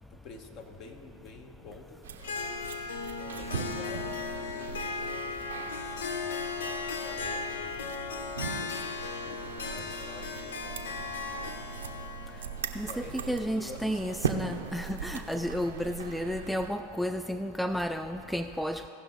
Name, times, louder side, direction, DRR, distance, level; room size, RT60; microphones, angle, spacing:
voice 1, 0.1-2.0 3.3-4.2 4.5-6.5 7.0-7.8 8.4-12.1 12.8-14.2 15.8-16.0, left 3 dB, 50° left, 5 dB, 1.1 m, -48 dB
sound 1, 2.0-16.7, right 6 dB, 85° right, 0.6 m, -40 dB
Harp, 2.2-14.0, left 4 dB, 80° left, 0.7 m, -37 dB
voice 2, 12.8-18.9, equal, ahead, 8 dB, 0.3 m, -32 dB
17.0 x 5.8 x 4.0 m, 2.9 s
hypercardioid pair, 100°, 0 cm